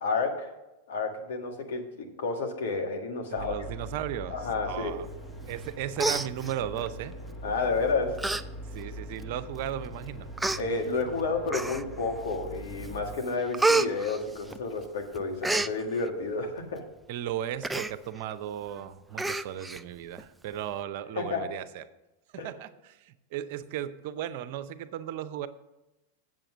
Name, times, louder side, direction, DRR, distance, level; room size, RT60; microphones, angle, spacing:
voice 1, 0.0-0.5 0.9-3.5 4.3-5.0 7.4-8.2 10.6-16.8 21.2-21.4 22.4-22.5, left 4 dB, 75° left, 3 dB, 1.7 m, -30 dB
sound 1, 3.3-13.2, right 1 dB, 30° left, 1.6 m, -42 dB
voice 2, 3.3-5.1 5.5-7.1 8.7-10.3 17.1-21.8 22.3-25.5, right 11 dB, 60° right, 12 dB, 0.6 m, -36 dB
Human voice, 5.5-5.7 6.0-6.9 7.6-7.8 8.2-8.4 8.8-8.9 9.7-9.8 10.4-10.6 11.5-12.0 12.5-12.9 13.2-14.9 15.1-15.7 17.6-17.9 18.3-18.4 18.7-18.8 19.2-19.8 20.2-20.3, right 3 dB, 10° right, 0.4 m, -29 dB
7.7 x 7.3 x 6.1 m, 1.0 s
hypercardioid pair, 105°, 0 cm